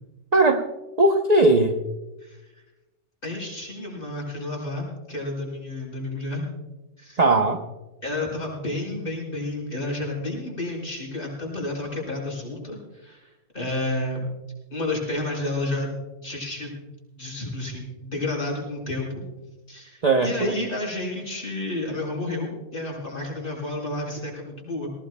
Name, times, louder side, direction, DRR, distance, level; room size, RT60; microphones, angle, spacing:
voice 1, 0.3-0.7 1.0-1.8 7.2-7.6 20.0-20.5, right 2 dB, 35° right, 4 dB, 0.7 m, -18 dB
voice 2, 3.2-6.4 7.0-7.2 8.0-13.3 13.5-14.2 14.7-15.9 16.2-16.8 17.2-19.2 19.7-24.9, left 2 dB, 35° left, -3 dB, 5.7 m, -31 dB
19.0 x 19.0 x 2.2 m, 1.0 s
omnidirectional pair, 1.6 m